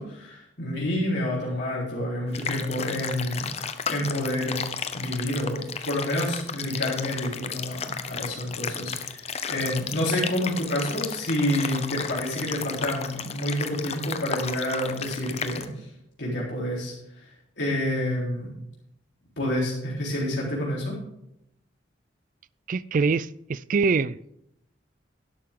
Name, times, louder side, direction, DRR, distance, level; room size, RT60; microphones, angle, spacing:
voice 1, 0.0-3.5 3.9-4.6 4.9-15.9 16.2-17.3 17.6-18.5 19.4-21.0, left 1 dB, 65° left, -5 dB, 4.0 m, -28 dB
sound 1, 2.3-15.7, left 6 dB, 35° left, 0.7 m, -34 dB
voice 2, 22.7-24.2, right 4 dB, 45° right, 19 dB, 0.3 m, -24 dB
12.0 x 11.5 x 3.7 m, 0.78 s
head